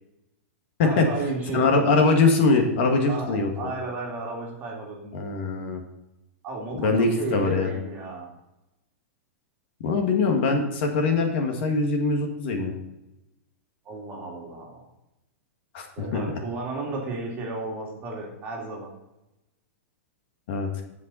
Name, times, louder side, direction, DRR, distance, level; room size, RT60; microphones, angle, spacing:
voice 1, 0.8-1.7 3.1-5.2 6.4-8.3 13.8-14.8 15.9-18.9, right 3 dB, 25° right, -1 dB, 2.4 m, -33 dB
voice 2, 1.5-3.5 5.1-5.8 6.7-7.7 9.8-12.7 15.7-15.9 16.1-16.2 20.5-20.7, left 3 dB, 50° left, 3 dB, 1.9 m, -22 dB
16.0 x 5.5 x 4.2 m, 0.92 s
supercardioid pair, 165°, 8 cm